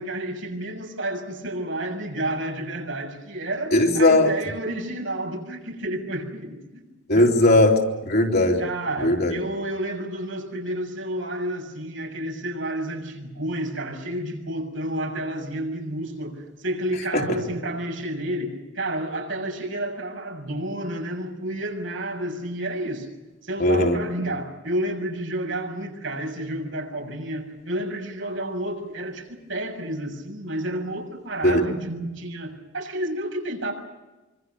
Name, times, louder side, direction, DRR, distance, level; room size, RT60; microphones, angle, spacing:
voice 1, 0.0-7.3 8.6-23.1 23.4-33.7, right 1 dB, 75° right, 2 dB, 6.7 m, -30 dB
voice 2, 3.7-4.3 7.1-8.6 9.0-9.3 17.1-17.2 23.6-24.0 31.4-31.6, left 1 dB, 55° left, 0 dB, 3.6 m, -18 dB
26.0 x 25.5 x 7.0 m, 1.1 s
head